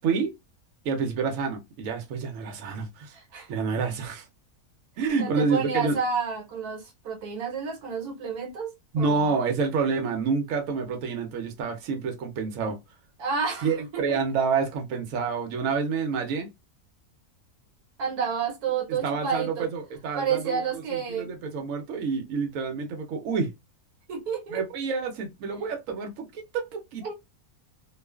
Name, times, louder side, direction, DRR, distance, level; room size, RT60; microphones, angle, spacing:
voice 1, 0.0-0.3 0.8-3.2 3.5-4.3 5.0-6.0 8.9-12.8 13.6-16.5 19.0-23.5 24.5-27.1, right 5 dB, 70° right, 1.0 m, -28 dB
voice 2, 3.1-3.5 5.2-9.4 13.2-14.2 18.0-19.7 20.1-21.3 24.1-24.6 27.0-27.1, right 6 dB, 85° right, 1.3 m, -30 dB
2.4 x 2.3 x 2.2 m
omnidirectional pair, 1.6 m